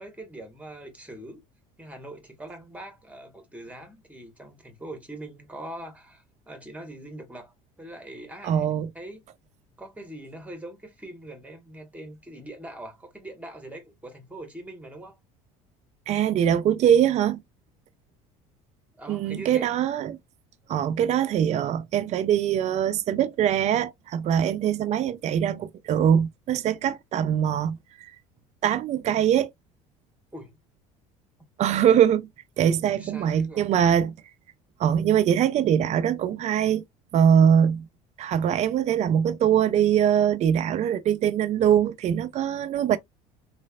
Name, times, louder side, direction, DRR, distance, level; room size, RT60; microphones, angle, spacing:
voice 1, 0.0-1.4 1.8-9.3 9.8-15.2 19.0-19.7 30.3-30.6 32.9-33.7, right 1 dB, 10° right, 1.4 m, -42 dB
voice 2, 8.4-8.9 16.1-17.4 19.1-20.2 20.7-27.8 28.6-29.5 31.6-32.3 32.6-34.1 34.8-36.8 37.1-37.9 38.2-43.0, right 9 dB, 45° right, 0.5 m, -22 dB
3.0 x 2.4 x 2.3 m
supercardioid pair, 80°, 16 cm